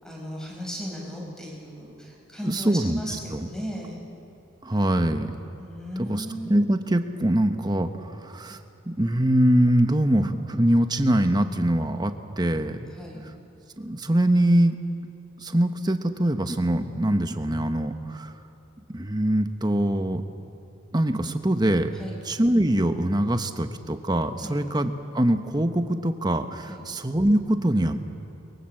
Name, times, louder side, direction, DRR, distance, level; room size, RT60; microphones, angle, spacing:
voice 1, 0.0-4.0 5.6-6.6 12.9-13.2 21.9-22.2 24.4-24.6 26.7-26.8, equal, 5° left, -2 dB, 5.0 m, -36 dB
voice 2, 2.4-3.0 3.3-3.5 4.6-5.3 6.0-8.6 8.9-12.9 13.8-14.8 15.4-18.3 18.9-20.2 20.9-21.9 22.3-28.0, right 1 dB, 20° right, 8 dB, 1.1 m, -23 dB
29.0 x 23.0 x 7.8 m, 2.8 s
head